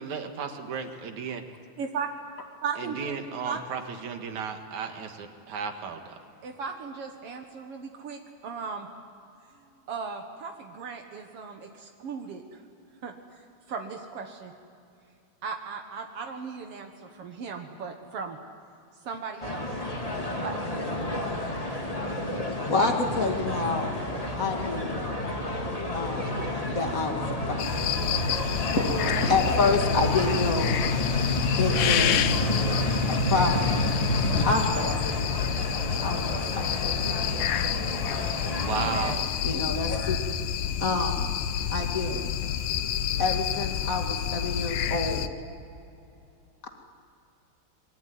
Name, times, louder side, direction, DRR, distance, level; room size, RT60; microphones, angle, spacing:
voice 1, 0.0-1.4 2.8-6.2 38.6-39.3, right 6 dB, 55° right, 5 dB, 2.6 m, -34 dB
voice 2, 2.6-3.1 3.4-3.6 6.4-8.9 9.9-12.4 13.0-13.1 13.7-14.5 15.4-18.4 19.0-19.7 20.1-21.0, right 5 dB, 75° right, 3 dB, 1.3 m, -36 dB
sound 1, 19.4-39.1, left 1 dB, 20° left, 0.9 m, -29 dB
voice 3, 22.7-24.0 24.4-25.0 25.9-27.9 28.4-30.8 31.6-32.3 33.1-33.8 34.4-35.0 36.0-36.7 39.4-40.3 40.8-41.3 41.7-42.2 43.2-45.3 46.6-46.7, left 3 dB, 45° left, 3 dB, 1.1 m, -28 dB
sound 2, 27.6-45.3, left 9 dB, 80° left, 1.8 m, -29 dB
26.5 x 23.0 x 9.5 m, 2.5 s
omnidirectional pair, 4.8 m